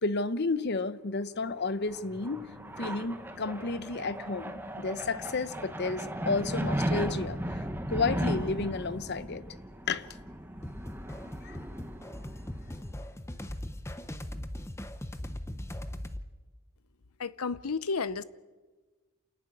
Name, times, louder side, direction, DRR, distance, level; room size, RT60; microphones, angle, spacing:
voice 1, 0.0-2.5 2.8-7.6 7.9-9.4 9.9-10.1 11.4-11.6, left 3 dB, 50° left, 0.7 m, -32 dB
sound 1, 1.6-12.9, equal, 10° right, 1.0 m, -36 dB
sound 2, 2.0-8.5, left 1 dB, 55° right, 5.0 m, -55 dB
sound 3, 10.6-16.2, left 1 dB, 10° left, 0.7 m, -40 dB
voice 2, 17.2-18.2, left 4 dB, 80° left, 0.7 m, -32 dB
28.0 x 11.0 x 9.6 m
head